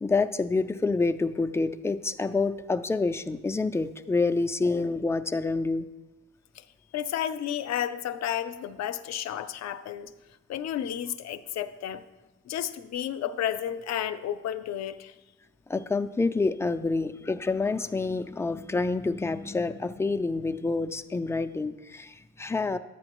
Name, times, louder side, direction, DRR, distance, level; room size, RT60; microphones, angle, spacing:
voice 1, 0.0-5.9 15.7-22.8, left 3 dB, 10° left, 8 dB, 0.3 m, -27 dB
voice 2, 6.9-10.1 10.5-12.0 12.5-15.1, left 10 dB, 60° left, 11 dB, 0.5 m, -32 dB
10.5 x 8.6 x 3.0 m, 1.1 s
cardioid pair, 90°, 30 cm